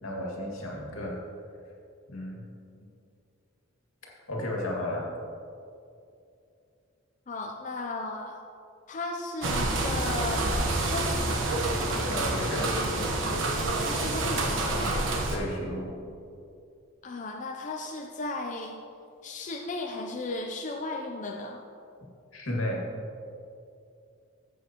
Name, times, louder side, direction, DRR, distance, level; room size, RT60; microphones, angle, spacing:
voice 1, 0.0-1.2 2.1-2.4 4.3-5.1 12.1-12.7 15.3-15.9 22.3-22.9, left 1 dB, 85° left, -2 dB, 2.1 m, -33 dB
voice 2, 7.3-8.4 8.9-10.5 10.8-11.5 13.8-15.0 17.0-18.7 19.2-21.6, left 2 dB, 35° left, 2 dB, 0.5 m, -35 dB
sound 1, 9.4-15.4, right 2 dB, 65° right, 1.1 m, -28 dB
13.5 x 8.1 x 3.0 m, 2.6 s
head